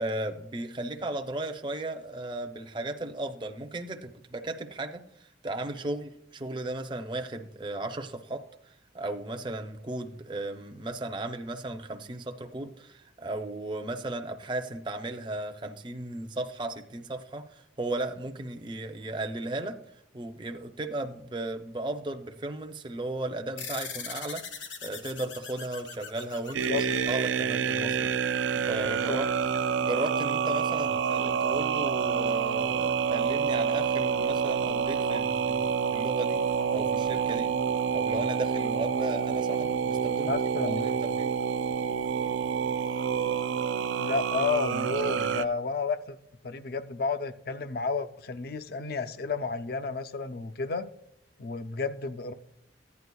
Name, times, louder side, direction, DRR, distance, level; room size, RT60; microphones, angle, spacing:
voice 1, 0.0-5.0 5.4-19.8 20.1-29.2 29.8-36.4 36.7-37.5 37.9-40.3 40.7-41.3, right 2 dB, 25° right, 6 dB, 0.5 m, -35 dB
sound 1, 23.6-28.4, left 5 dB, 80° left, 1.4 m, -41 dB
sound 2, 26.5-45.4, right 6 dB, 80° right, 0.4 m, -28 dB
voice 2, 40.3-40.9 44.0-46.2 46.4-50.9 51.4-52.3, left 4 dB, 50° left, 11 dB, 0.4 m, -31 dB
15.0 x 9.5 x 2.3 m, 0.76 s
head